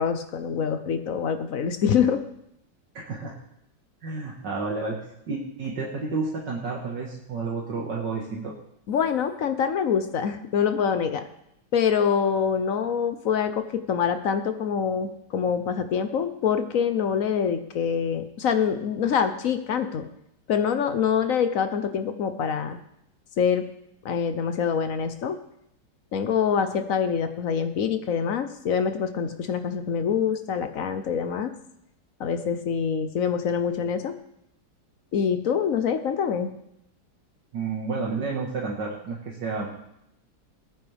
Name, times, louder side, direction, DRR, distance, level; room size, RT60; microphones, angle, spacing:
voice 1, 0.0-2.2 8.9-11.2 11.7-20.0 20.5-22.8 23.4-23.7 24.0-25.4 26.1-31.5 32.2-34.1 35.1-36.5, left 7 dB, 60° left, 9 dB, 1.0 m, -25 dB
voice 2, 2.9-3.4 4.0-8.5 37.5-39.7, right 4 dB, 70° right, -3 dB, 2.2 m, -31 dB
20.0 x 9.2 x 3.4 m, 0.79 s
omnidirectional pair, 2.0 m